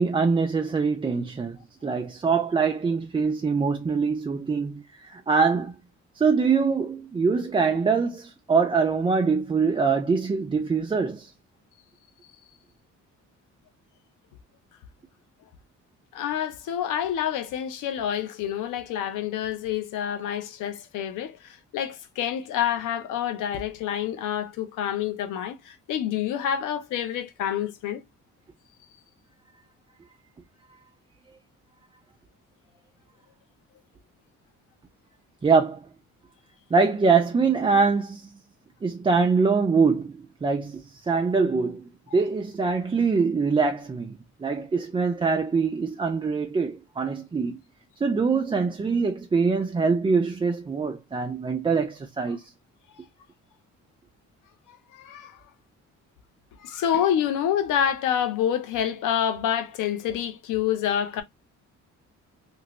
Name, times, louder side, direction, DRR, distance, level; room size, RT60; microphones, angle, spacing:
voice 1, 0.0-5.8 6.2-11.3 35.4-35.8 36.7-38.3 38.8-41.8 42.1-47.6 48.0-52.4, right 5 dB, 15° right, 0.4 m, -24 dB
voice 2, 16.1-28.0 54.7-55.4 56.6-61.2, left 9 dB, 85° left, 0.7 m, -27 dB
3.0 x 2.6 x 2.9 m
cardioid pair, 90°, 30 cm